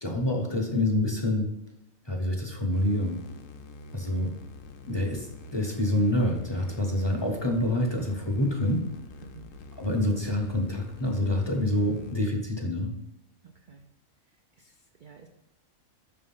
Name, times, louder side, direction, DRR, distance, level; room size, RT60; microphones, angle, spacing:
voice 1, 0.0-1.5 2.0-3.2 3.9-4.3 4.9-8.8 9.8-12.9, left 1 dB, 25° left, 2 dB, 0.8 m, -27 dB
sound 1, 2.7-12.2, left 3 dB, 80° left, 1.0 m, -46 dB
voice 2, 9.2-9.5 13.4-13.8 14.6-15.3, right 6 dB, 60° right, 4 dB, 0.5 m, -51 dB
6.2 x 4.4 x 5.5 m, 0.89 s
omnidirectional pair, 1.4 m